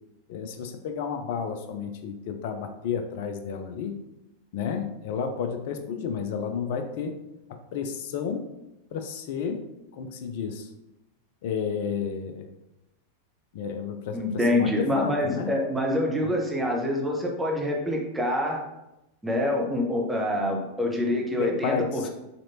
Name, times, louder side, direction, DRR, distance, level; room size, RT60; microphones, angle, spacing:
voice 1, 0.3-4.0 4.5-7.1 7.5-8.4 8.9-9.6 9.9-10.7 11.4-12.5 13.5-14.2 14.5-15.6 16.2-16.3 21.4-22.0, left 6 dB, 50° left, 7 dB, 0.4 m, -31 dB
voice 2, 14.1-18.6 19.2-22.1, left 1 dB, 5° right, -1 dB, 0.8 m, -26 dB
4.1 x 3.1 x 2.7 m, 0.93 s
figure-of-eight pair, 90°, 0 cm